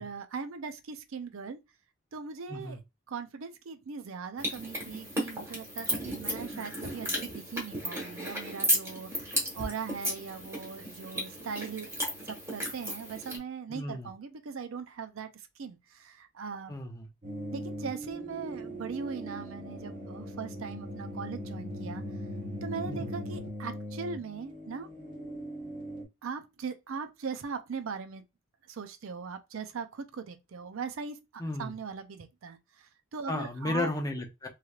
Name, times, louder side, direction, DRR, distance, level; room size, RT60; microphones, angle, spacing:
voice 1, 0.0-1.6 2.1-2.8 3.1-11.9 12.3-15.3 15.6-16.8 17.5-22.0 22.6-24.9 26.2-28.2 28.7-33.9, right 5 dB, 80° right, 0.5 m, -40 dB
sound 1, 4.4-13.4, equal, 15° right, 1.2 m, -34 dB
voice 2, 13.7-14.1 16.7-17.1 22.9-23.1 31.4-31.7 33.3-34.5, left 2 dB, 20° left, 0.6 m, -34 dB
sound 2, 17.2-26.0, equal, 40° right, 1.4 m, -40 dB
3.1 x 3.1 x 2.3 m
head